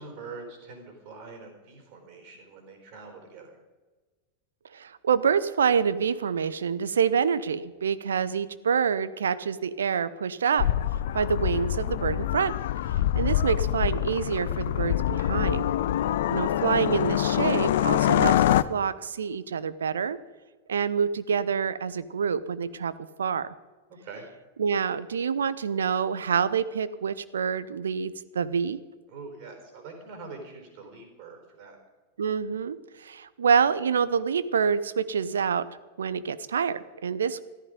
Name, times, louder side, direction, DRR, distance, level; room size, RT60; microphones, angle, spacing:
voice 1, 0.0-3.6 14.3-14.5 24.0-24.2 29.1-31.8, right 4 dB, 45° right, 4 dB, 4.2 m, -44 dB
voice 2, 4.7-10.7 11.1-12.5 13.1-15.6 16.3-18.3 18.7-20.2 20.7-22.9 23.2-23.5 24.6-28.8 32.2-35.7 36.0-37.4, right 6 dB, 65° right, 15 dB, 0.7 m, -26 dB
sound 1, 10.6-18.6, left 12 dB, 55° left, 0.5 m, -25 dB
14.5 x 14.0 x 5.2 m, 1.3 s
figure-of-eight pair, 90°, 0 cm